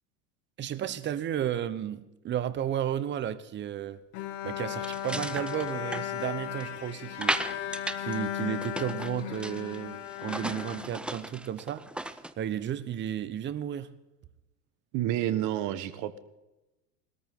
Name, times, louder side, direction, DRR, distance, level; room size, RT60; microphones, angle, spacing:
voice 1, 0.6-4.0 4.4-7.6 8.0-13.9, right 10 dB, 30° right, 1.0 m, -33 dB
Bowed string instrument, 4.1-11.5, left 11 dB, 65° left, 2.4 m, -36 dB
sound 1, 4.8-6.7 7.2-8.2 8.4-9.8 10.1-12.3, right 1 dB, 5° right, 0.5 m, -35 dB
voice 2, 14.9-16.2, right 13 dB, 50° right, 1.4 m, -29 dB
20.5 x 13.5 x 3.8 m
supercardioid pair, 115°, 38 cm